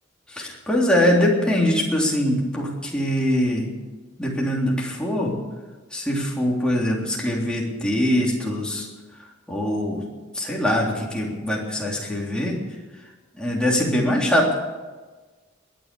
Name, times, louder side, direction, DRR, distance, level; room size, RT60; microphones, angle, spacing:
voice 1, 0.3-3.7 4.2-5.3 5.9-8.9 9.5-10.0 10.3-12.6 13.4-14.5, left 1 dB, 5° left, -3 dB, 3.4 m, -22 dB
22.0 x 9.2 x 7.0 m, 1.3 s
head